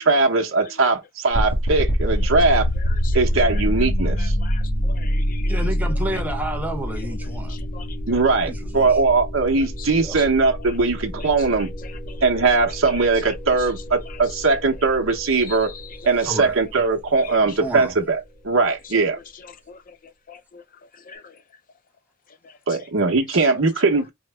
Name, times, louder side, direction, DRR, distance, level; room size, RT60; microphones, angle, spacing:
voice 1, 0.0-2.7 3.1-4.3 8.1-11.7 12.2-15.7 16.0-19.2 22.7-24.1, right 3 dB, 75° right, 0.9 m, -20 dB
sound 1, 1.3-18.2, equal, 85° left, 1.6 m, -26 dB
voice 2, 2.8-3.2 3.5-3.6 4.0-5.6 7.5-8.2 9.6-10.3 11.2-12.3 13.2-13.3 14.1-14.4 15.3-16.1 17.2-17.3 18.9-19.0 19.4-20.6 21.1-21.4 22.4-22.5, left 6 dB, 40° left, 0.5 m, -42 dB
voice 3, 5.5-7.6 8.4-9.0 10.0-10.2 16.2-16.6 17.3-17.9, right 1 dB, 10° right, 0.7 m, -31 dB
4.7 x 2.1 x 3.3 m
head